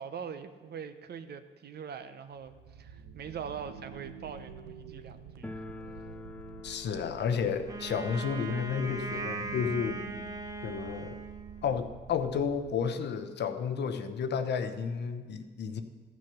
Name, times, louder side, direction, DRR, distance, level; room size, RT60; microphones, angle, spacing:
voice 1, 0.0-5.5, right 7 dB, 55° right, 10 dB, 0.8 m, -42 dB
sound 1, 2.4-13.0, right 7 dB, 85° right, 0.8 m, -49 dB
sound 2, 5.4-12.1 12.4-12.5 12.7-12.8 13.6-13.7 14.0-15.2, left 2 dB, 5° left, 0.5 m, -49 dB
voice 2, 6.6-10.0 10.6-11.2 11.6-15.8, left 6 dB, 60° left, 8 dB, 0.8 m, -32 dB
Wind instrument woodwind instrument, 7.7-11.9, right 3 dB, 20° right, 0.9 m, -39 dB
14.0 x 6.2 x 5.7 m, 1.4 s
cardioid pair, 90°, 20 cm